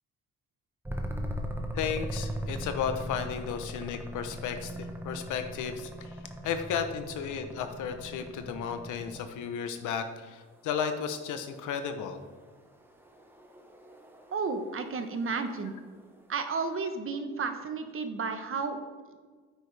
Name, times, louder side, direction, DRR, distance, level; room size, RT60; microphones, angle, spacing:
sound 1, 0.8-9.4 11.7-16.2, equal, 5° right, 1.0 m, -39 dB
voice 1, 1.7-6.2 6.4-12.2, left 7 dB, 80° left, 8 dB, 0.9 m, -34 dB
voice 2, 14.3-15.7 16.3-18.8 19.1-19.2, right 4 dB, 45° right, 7 dB, 1.1 m, -32 dB
9.2 x 8.4 x 3.4 m, 1.5 s
cardioid pair, 90°, 30 cm